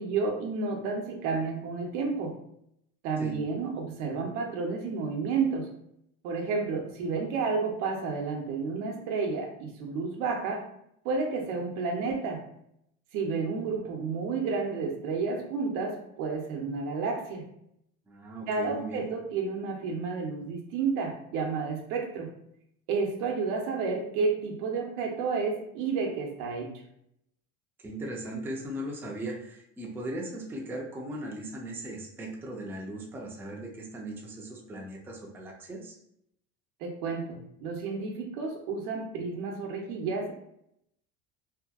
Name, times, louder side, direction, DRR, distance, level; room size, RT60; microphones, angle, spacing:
voice 1, 0.0-2.3 3.0-5.7 6.2-10.6 11.0-12.4 13.1-17.5 18.5-22.3 22.9-26.7 36.8-40.3, right 4 dB, 80° right, 2 dB, 0.8 m, -31 dB
voice 2, 18.1-19.1 27.8-36.0, right 1 dB, 5° right, -2 dB, 0.4 m, -38 dB
2.8 x 2.6 x 2.3 m, 0.74 s
supercardioid pair, 115°, 37 cm